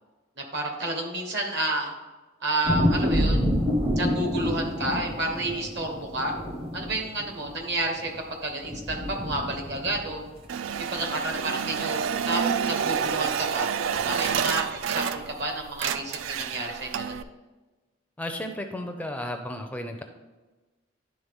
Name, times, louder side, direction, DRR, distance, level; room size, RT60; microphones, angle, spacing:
voice 1, 0.5-1.9 2.4-3.4 3.9-6.3 6.7-8.1 8.4-10.3 10.9-13.7 14.0-17.2, right 2 dB, 60° right, 2 dB, 1.3 m, -30 dB
sound 1, 2.6-8.2 8.6-10.5 10.8-10.9 12.1-12.2 13.9-14.5, equal, 30° right, 0.7 m, -28 dB
sound 2, 10.5-15.4 15.7-17.2, right 7 dB, 85° right, 0.3 m, -28 dB
voice 2, 18.2-20.0, left 1 dB, 10° left, 5 dB, 0.4 m, -33 dB
11.0 x 3.7 x 3.5 m, 1.2 s
head